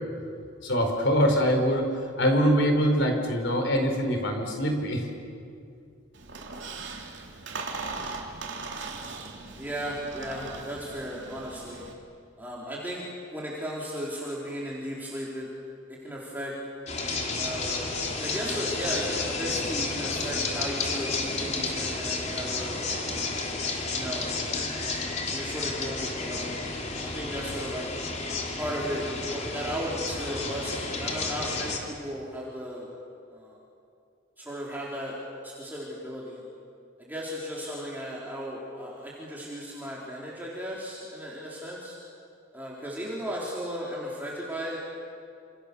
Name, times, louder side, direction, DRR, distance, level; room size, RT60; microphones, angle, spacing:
voice 1, 0.6-1.9 2.2-5.1, equal, 60° left, 4 dB, 5.0 m, -23 dB
Squeak, 6.1-11.9, right 3 dB, 60° right, 3.2 m, -39 dB
voice 2, 9.6-11.8 12.4-15.5 15.9-16.6 17.3-17.9 18.2-23.3 23.9-24.3 24.6-25.0 25.3-27.9 28.6-32.9 33.3-33.6 34.4-35.2 35.4-36.4 37.0-42.0 42.5-44.8, equal, 10° right, -5 dB, 4.0 m, -35 dB
Aucar Island ambience, 16.9-31.8, left 3 dB, 35° left, 3.4 m, -31 dB
29.0 x 28.0 x 7.0 m, 2.4 s
head